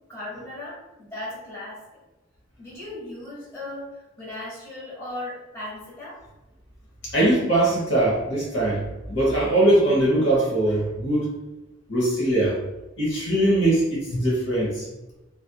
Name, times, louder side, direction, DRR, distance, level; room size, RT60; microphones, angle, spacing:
voice 1, 0.1-1.8 2.6-3.9 4.2-6.2, left 1 dB, 15° left, -7 dB, 1.1 m, -37 dB
voice 2, 7.0-8.8 9.1-11.3 11.9-12.6 13.0-14.8, right 1 dB, 65° left, -4 dB, 0.8 m, -21 dB
2.6 x 2.4 x 2.2 m, 1.0 s
head